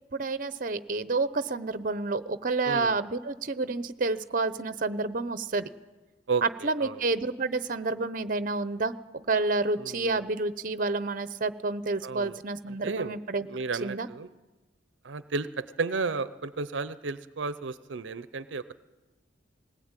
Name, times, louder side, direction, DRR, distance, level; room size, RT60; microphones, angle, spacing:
voice 1, 0.1-5.7 6.4-8.9 9.3-13.5 13.8-14.1, right 3 dB, 45° right, 14 dB, 0.8 m, -29 dB
voice 2, 2.6-3.0 6.3-7.0 9.8-10.3 12.0-12.4 12.7-13.2 13.5-14.3 15.0-18.7, right 4 dB, 80° right, 14 dB, 0.6 m, -33 dB
20.0 x 18.5 x 9.0 m, 1.2 s
head